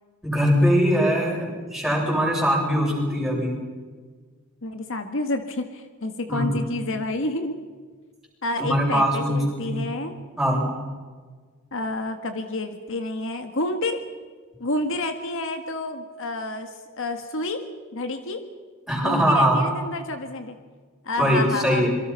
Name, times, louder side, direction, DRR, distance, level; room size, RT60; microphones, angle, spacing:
voice 1, 0.2-3.5 6.3-6.6 8.6-9.8 10.4-10.7 18.9-19.6 21.2-21.9, equal, ahead, -3 dB, 7.5 m, -21 dB
voice 2, 4.6-7.6 8.4-10.1 11.7-14.0 14.6-17.6 17.9-18.4 19.0-20.6 21.0-21.9, left 2 dB, 65° left, 7 dB, 1.7 m, -29 dB
26.5 x 23.5 x 5.7 m, 1.5 s
head